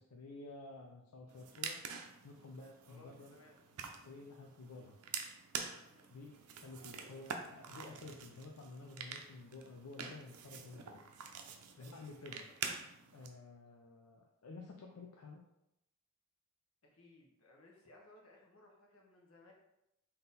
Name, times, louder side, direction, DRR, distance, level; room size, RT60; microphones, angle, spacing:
voice 1, 0.0-1.8 2.2-3.4 4.0-5.0 6.1-11.0 11.8-12.5 13.1-15.4, left 3 dB, 85° left, 1 dB, 0.5 m, -52 dB
sound 1, 1.3-13.3, right 6 dB, 90° right, 0.5 m, -47 dB
voice 2, 2.9-3.6 5.9-6.1 11.8-12.5 16.8-19.5, left 1 dB, 70° left, 0 dB, 1.0 m, -62 dB
3.8 x 2.8 x 3.9 m, 0.85 s
head